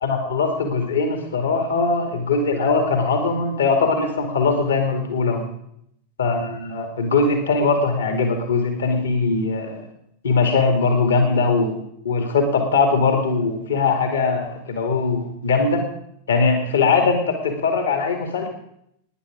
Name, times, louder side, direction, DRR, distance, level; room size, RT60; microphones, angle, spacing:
voice 1, 0.0-5.4 6.2-9.8 10.2-11.8 12.0-15.8 16.3-18.5, left 4 dB, 65° left, 4 dB, 2.0 m, -21 dB
18.0 x 10.0 x 5.1 m, 0.75 s
figure-of-eight pair, 90°, 0 cm